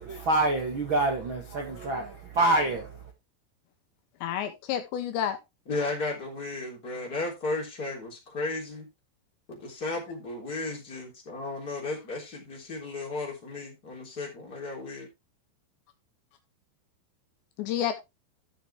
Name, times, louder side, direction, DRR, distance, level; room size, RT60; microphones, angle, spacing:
voice 1, 0.0-3.0, right 2 dB, 75° right, 1.1 m, -26 dB
voice 2, 4.2-5.4 17.6-18.0, left 10 dB, 75° left, 3.0 m, -29 dB
voice 3, 5.7-8.8 9.5-15.1, left 3 dB, 20° left, 3.4 m, -34 dB
13.5 x 6.6 x 3.3 m
omnidirectional pair, 5.6 m